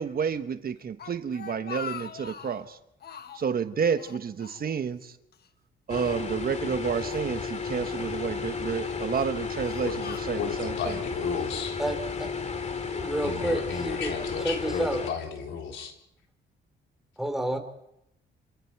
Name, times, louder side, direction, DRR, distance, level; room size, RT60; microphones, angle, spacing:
voice 1, 0.0-2.8 3.3-5.1 5.9-10.9, right 7 dB, 50° right, 9 dB, 1.2 m, -30 dB
Speech, 0.8-2.7 3.0-3.6 4.0-5.1 5.3-5.5 6.3-7.3 8.0-8.4 9.1-10.8, left 7 dB, 55° left, 1.3 m, -43 dB
sound 1, 5.9-15.1, left 5 dB, 35° left, 2.4 m, -33 dB
voice 2, 10.3-11.8 13.2-16.0, left 6 dB, 75° left, 2 dB, 3.9 m, -33 dB
voice 3, 11.8-12.3 12.9-14.1 14.4-15.0 17.2-17.6, right 1 dB, ahead, 6 dB, 3.7 m, -30 dB
27.5 x 27.0 x 4.7 m, 0.81 s
cardioid pair, 90°, 20 cm